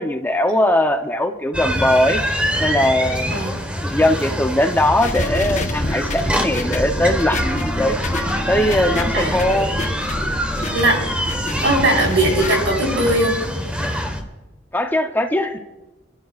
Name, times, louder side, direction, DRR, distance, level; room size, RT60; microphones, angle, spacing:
voice 1, 0.0-2.2 2.6-3.5 3.8-7.9 8.5-9.7 14.7-15.6, left 1 dB, 10° left, 5 dB, 0.7 m, -20 dB
sound 1, 1.5-14.2, equal, 5° right, 1.2 m, -24 dB
sound 2, 5.0-12.6, left 1 dB, 40° left, 1.0 m, -28 dB
voice 2, 9.1-9.6 10.7-11.0 11.6-13.4, right 1 dB, 75° right, -2 dB, 4.6 m, -19 dB
27.0 x 12.0 x 2.4 m, 1.1 s
head